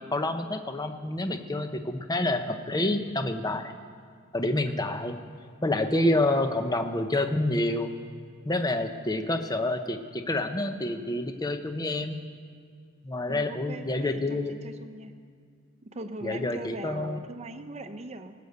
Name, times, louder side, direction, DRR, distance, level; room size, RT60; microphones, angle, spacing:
voice 1, 0.1-3.7 4.3-5.2 5.6-7.9 8.5-12.2 13.0-14.6 16.2-17.2, left 1 dB, 20° left, 7 dB, 0.7 m, -28 dB
voice 2, 13.3-15.1 15.8-18.3, right 2 dB, 30° right, 7 dB, 0.8 m, -40 dB
19.0 x 6.8 x 8.0 m, 2.1 s
head